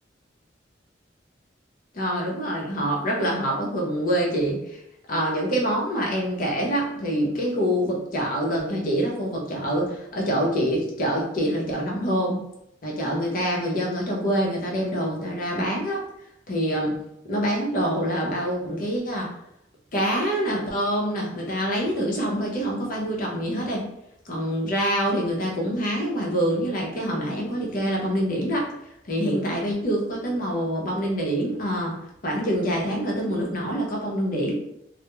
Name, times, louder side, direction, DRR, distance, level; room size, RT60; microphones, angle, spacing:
voice 1, 1.9-4.8 5.1-12.4 12.8-16.0 16.5-17.0 17.2-19.3 19.9-23.8 24.2-28.7 29.1-32.0 32.2-34.6, equal, 50° left, -2 dB, 0.7 m, -25 dB
2.2 x 2.0 x 2.9 m, 0.79 s
head